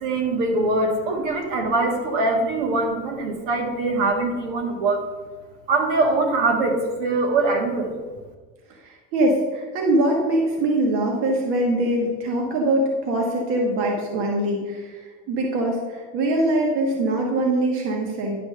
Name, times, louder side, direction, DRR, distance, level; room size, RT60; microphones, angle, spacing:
voice 1, 0.0-5.1 5.7-8.0, right 2 dB, 75° right, 3 dB, 1.6 m, -22 dB
voice 2, 8.7-18.4, right 1 dB, 45° right, 1 dB, 1.2 m, -23 dB
10.5 x 3.5 x 6.5 m, 1.4 s
cardioid pair, 180°, 29 cm